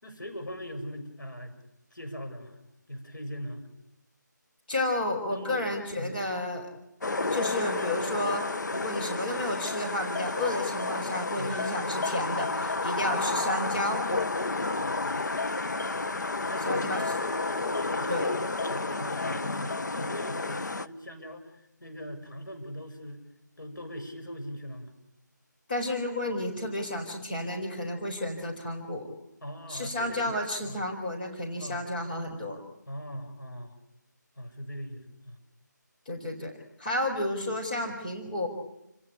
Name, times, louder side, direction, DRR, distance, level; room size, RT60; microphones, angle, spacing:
voice 1, 0.0-1.6 1.9-2.6 2.9-3.7 5.3-6.2 11.4-11.6 15.0-15.3 16.4-23.2 23.6-24.9 29.4-30.4 30.6-30.8 31.6-31.9 32.9-33.7 34.4-35.4, equal, 85° left, 5 dB, 7.3 m, -40 dB
voice 2, 4.7-6.7 7.3-8.4 8.7-14.0 16.7-17.0 18.1-18.3 25.7-29.1 29.7-32.6 36.1-36.5 36.8-38.5, left 1 dB, 30° left, 0 dB, 4.3 m, -31 dB
sound 1, 7.0-20.9, left 3 dB, 70° left, 1.0 m, -31 dB
29.5 x 17.0 x 8.8 m, 0.89 s
figure-of-eight pair, 170°, 10 cm